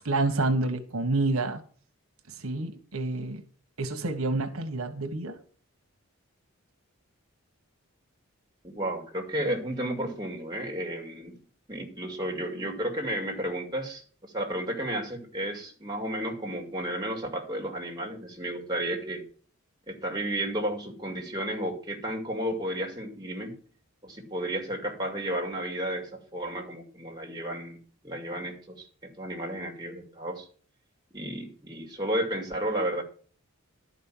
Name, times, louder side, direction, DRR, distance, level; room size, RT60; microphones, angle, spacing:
voice 1, 0.0-1.6 2.4-3.4 3.8-5.3, right 2 dB, 80° right, 6 dB, 1.4 m, -28 dB
voice 2, 8.6-11.4 11.7-19.2 19.9-23.6 24.0-27.8 28.0-30.5 31.1-33.0, right 1 dB, 20° right, 1 dB, 2.2 m, -32 dB
12.0 x 5.5 x 7.3 m, 0.43 s
head